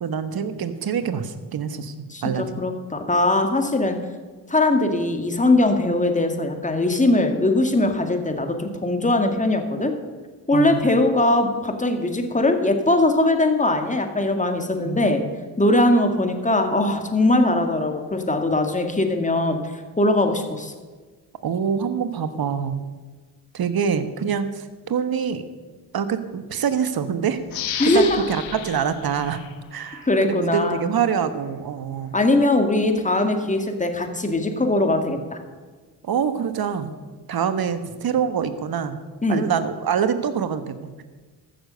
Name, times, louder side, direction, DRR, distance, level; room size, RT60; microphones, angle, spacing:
voice 1, 0.0-1.9 2.2-2.4 10.5-10.8 14.8-15.2 21.4-22.8 23.5-25.4 25.9-29.4 29.7-32.1 36.0-36.9 37.3-39.0 39.3-41.0, right 7 dB, 50° right, 11 dB, 1.2 m, -25 dB
voice 2, 2.1-4.0 4.5-9.9 10.5-15.2 15.6-20.7 27.8-28.2 30.1-30.8 32.1-35.4 39.2-39.5, left 2 dB, 15° left, 5 dB, 2.0 m, -21 dB
sound 1, 27.5-30.2 30.6-30.7, left 9 dB, 75° left, 1.3 m, -33 dB
14.0 x 6.8 x 6.4 m, 1.4 s
hypercardioid pair, 50°, 47 cm